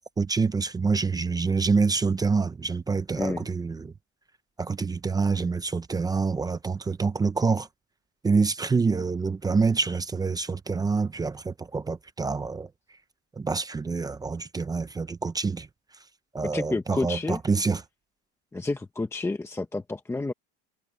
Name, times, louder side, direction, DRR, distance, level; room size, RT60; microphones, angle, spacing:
voice 1, 0.2-3.9 4.6-7.7 8.2-12.7 13.4-15.7 16.3-17.8, right 4 dB, 10° right, 0.6 m, -26 dB
voice 2, 16.4-17.4 18.5-20.3, left 3 dB, 10° left, 1.0 m, -30 dB
cardioid pair, 150°, 33 cm